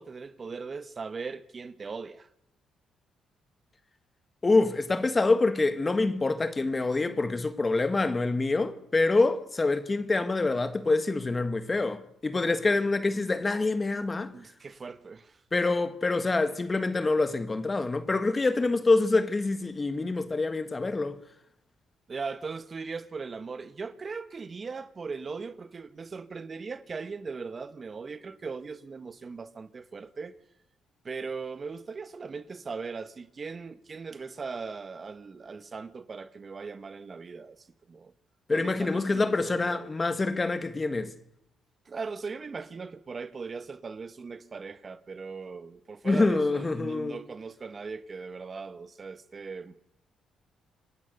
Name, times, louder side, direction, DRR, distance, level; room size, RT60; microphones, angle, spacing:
voice 1, 0.0-2.3 14.3-15.4 22.1-30.3 31.0-38.1 38.5-39.9 41.9-49.8, right 4 dB, 35° right, 1.4 m, -39 dB
voice 2, 4.4-14.3 15.5-21.2 38.5-41.1 46.0-47.2, left 3 dB, 25° left, 1.9 m, -26 dB
27.5 x 23.5 x 6.8 m
cardioid pair, 90°, 0 cm